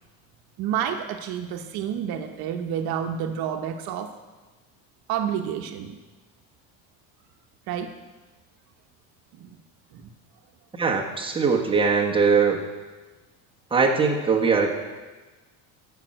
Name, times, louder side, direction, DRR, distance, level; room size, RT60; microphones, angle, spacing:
voice 1, 0.6-4.1 5.1-6.0 7.7-7.9 9.4-9.6 9.9-10.1, right 9 dB, 70° right, 5 dB, 1.1 m, -29 dB
voice 2, 10.8-12.6 13.7-14.8, right 5 dB, 15° right, -1 dB, 1.5 m, -21 dB
14.0 x 5.8 x 7.7 m, 1.3 s
cardioid pair, 145°, 38 cm